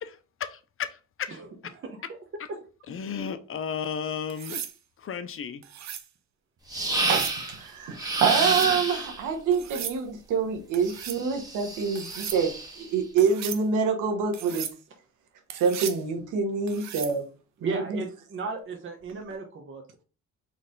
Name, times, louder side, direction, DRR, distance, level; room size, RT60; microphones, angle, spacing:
voice 1, 0.0-1.7 2.9-4.6 5.0-5.6, left 7 dB, 45° left, 0.6 m, -34 dB
voice 2, 1.8-2.2 2.5-2.6 17.6-20.0, right 4 dB, 45° right, 1.0 m, -35 dB
sound 1, 4.3-4.8 5.6-6.1 6.9-7.4 8.2-8.7 9.5-10.0 10.7-11.2 11.9-12.4 13.2-13.6 14.3-14.8 15.5-16.0 16.7-17.2 19.1-19.4, right 10 dB, 65° right, 0.7 m, -37 dB
sound 2, 6.7-7.6 8.0-9.2 10.9-12.8, right 2 dB, 15° right, 1.7 m, -29 dB
voice 3, 7.0-14.7 15.6-17.3 17.6-18.0, right 5 dB, 90° right, 1.2 m, -26 dB
4.2 x 3.2 x 3.8 m
cardioid pair, 90°, 30 cm